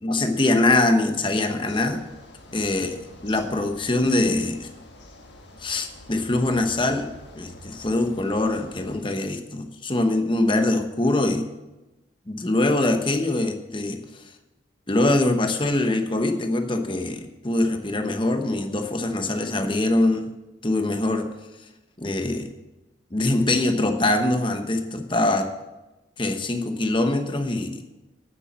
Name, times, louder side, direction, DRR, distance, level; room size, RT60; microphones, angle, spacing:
voice 1, 0.0-2.0 2.5-3.0 3.2-4.7 5.6-11.5 12.3-14.0 14.9-20.3 20.6-21.3 22.0-22.5 23.1-25.5 26.2-27.8, left 2 dB, 25° left, 6 dB, 1.0 m, -23 dB
sound 1, 1.6-9.0, left 1 dB, 60° left, 1.6 m, -46 dB
8.9 x 8.4 x 7.3 m, 1.0 s
head